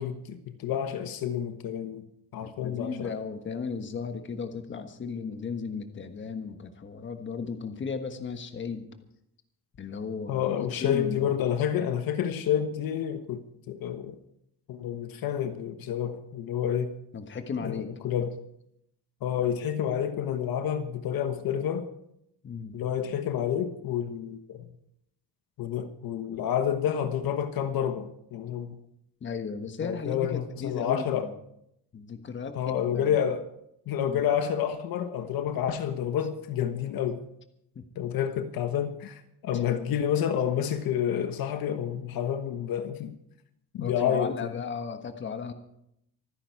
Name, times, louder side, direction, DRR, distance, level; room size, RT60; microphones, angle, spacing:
voice 1, 0.0-2.1 2.3-3.1 10.3-14.1 14.7-16.9 17.6-18.4 19.2-21.9 22.7-24.6 25.6-28.8 29.8-31.3 32.5-33.5 33.9-37.2 38.0-43.2 43.7-44.6, left 9 dB, 60° left, 1.2 m, -29 dB
voice 2, 2.4-8.9 9.8-11.3 17.1-17.9 22.4-22.7 29.2-31.3 31.9-33.2 34.1-34.2 37.7-37.8 39.5-39.6 43.8-45.5, left 5 dB, 30° left, 1.4 m, -35 dB
25.0 x 10.0 x 4.7 m
cardioid pair, 165°, 39 cm